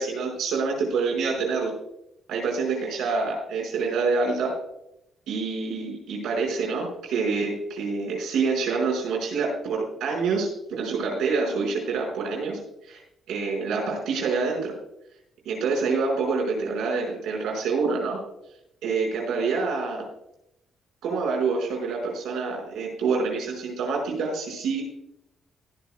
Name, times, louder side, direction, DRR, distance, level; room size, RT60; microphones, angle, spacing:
voice 1, 0.0-1.7 2.3-4.5 5.3-13.0 13.3-14.7 15.4-18.2 18.8-20.1 21.0-24.8, right 4 dB, 85° right, 0 dB, 4.9 m, -27 dB
20.5 x 11.0 x 2.2 m, 0.83 s
cardioid pair, 90°, 0 cm